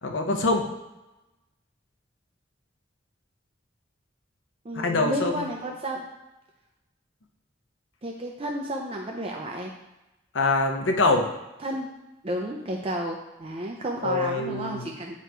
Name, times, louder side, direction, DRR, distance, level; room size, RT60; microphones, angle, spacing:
voice 1, 0.0-0.7 4.7-5.4 10.3-11.3 14.0-14.9, left 2 dB, 90° left, 4 dB, 0.8 m, -24 dB
voice 2, 4.6-6.1 8.0-9.7 11.6-11.9 12.2-15.2, right 1 dB, 30° right, 0 dB, 0.5 m, -32 dB
8.4 x 3.0 x 4.5 m, 1.0 s
head